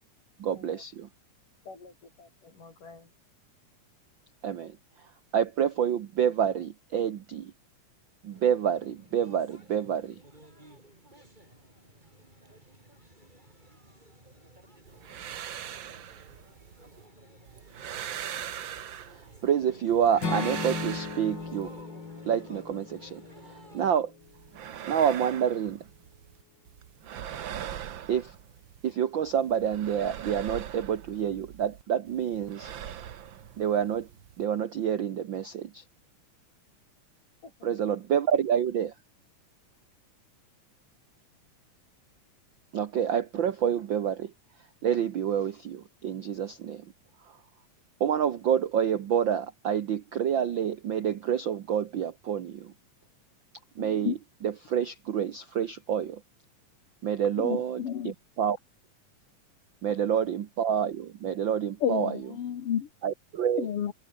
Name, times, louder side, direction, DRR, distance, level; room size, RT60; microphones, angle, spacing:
voice 1, 0.4-1.1 4.4-4.8 5.3-7.5 8.2-10.2 19.1-21.7 22.2-23.2 23.5-24.1 24.9-25.8 28.1-28.3 28.8-32.7 33.6-34.1 34.4-35.8 37.6-38.9 42.7-44.3 44.8-46.8 48.0-52.7 53.8-56.2 57.0-58.6 59.8-62.2 63.0-63.7, right 8 dB, 80° right, 1.0 m, -28 dB
voice 2, 1.6-3.1 37.4-37.7, left 3 dB, 80° left, 9.4 m, -50 dB
sound 1, 8.3-24.0, right 1 dB, 15° right, 6.3 m, -54 dB
sound 2, 14.9-17.1 17.5-19.5 19.9-21.8 24.2-26.4 26.7-28.9 29.3-31.8 32.1-34.5, right 10 dB, 60° right, 1.3 m, -41 dB
Acoustic guitar / Strum, 20.2-24.3, left 4 dB, 35° left, 3.8 m, -36 dB
voice 3, 53.8-54.2 57.4-58.1 61.8-62.9 63.6-63.9, left 9 dB, 50° left, 2.2 m, -31 dB
omnidirectional pair, 3.6 m